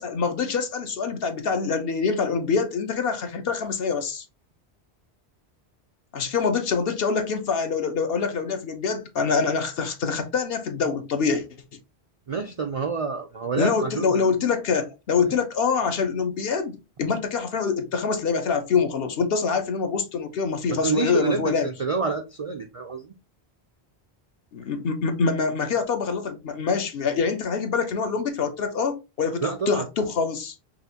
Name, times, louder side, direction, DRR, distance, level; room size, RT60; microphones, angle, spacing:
voice 1, 0.0-4.2 6.1-11.5 13.6-21.7 24.5-30.5, left 5 dB, 65° left, 0.9 m, -25 dB
voice 2, 12.3-14.4 15.2-15.3 20.7-23.1 29.4-29.9, right 5 dB, 55° right, 0.4 m, -28 dB
5.5 x 2.5 x 2.7 m
omnidirectional pair, 1.1 m